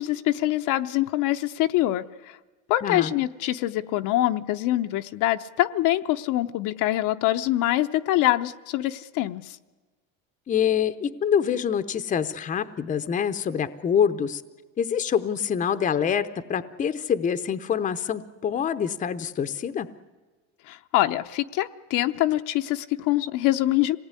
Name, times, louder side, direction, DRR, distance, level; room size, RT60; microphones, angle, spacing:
voice 1, 0.0-2.3 2.7-9.6 20.7-24.0, left 15 dB, 55° left, 8 dB, 0.8 m, -24 dB
voice 2, 2.8-3.1 10.5-14.4 14.8-19.9, left 8 dB, 20° left, 11 dB, 0.8 m, -25 dB
26.5 x 18.5 x 9.7 m, 1.3 s
cardioid pair, 160°, 36 cm